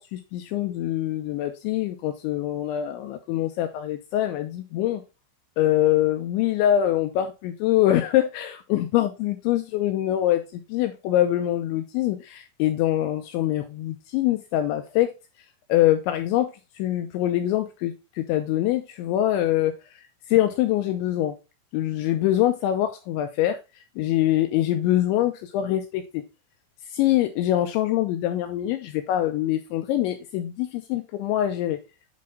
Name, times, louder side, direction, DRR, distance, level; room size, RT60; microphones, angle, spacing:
voice 1, 0.1-5.0 5.6-15.1 15.7-16.5 16.8-19.7 20.3-21.3 21.7-23.6 24.0-26.2 26.9-31.8, left 13 dB, 80° left, 7 dB, 2.7 m, -24 dB
8.5 x 4.4 x 3.5 m, 0.27 s
omnidirectional pair, 5.8 m